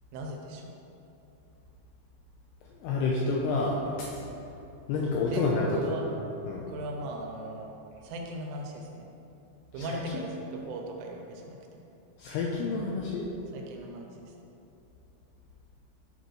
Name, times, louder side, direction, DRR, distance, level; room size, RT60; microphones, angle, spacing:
voice 1, 0.1-0.8 5.3-6.1 6.7-7.7 8.0-9.1 9.7-11.6 13.5-14.2, right 2 dB, 85° right, 1 dB, 3.5 m, -38 dB
voice 2, 2.8-4.2 4.9-5.9 6.4-6.7 9.8-10.2 12.2-13.3, left 3 dB, 85° left, -3 dB, 2.4 m, -29 dB
11.5 x 7.0 x 3.1 m, 2.8 s
omnidirectional pair, 5.6 m